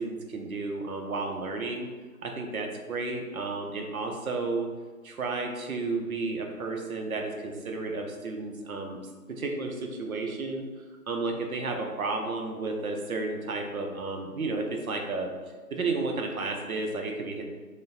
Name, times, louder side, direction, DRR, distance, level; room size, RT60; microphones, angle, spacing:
voice 1, 0.0-1.9 2.2-4.7 5.0-9.0 9.3-10.6 11.1-15.3 15.7-17.4, right 3 dB, 65° right, 2 dB, 0.5 m, -32 dB
2.5 x 2.1 x 2.4 m, 1.4 s
figure-of-eight pair, 165°, 47 cm